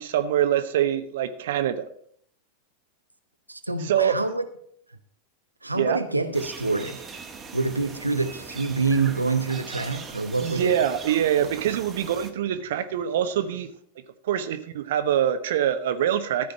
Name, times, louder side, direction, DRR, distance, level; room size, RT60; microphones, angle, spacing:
voice 1, 0.0-1.9 3.8-4.2 5.8-6.0 10.4-13.7 14.2-16.5, right 10 dB, 55° right, 0.9 m, -24 dB
voice 2, 3.5-4.4 5.6-7.0 7.5-10.7, right 3 dB, 85° right, 0.9 m, -26 dB
sound 1, 6.3-12.3, right 5 dB, 20° right, 1.6 m, -41 dB
14.0 x 5.1 x 7.3 m
figure-of-eight pair, 90°, 0 cm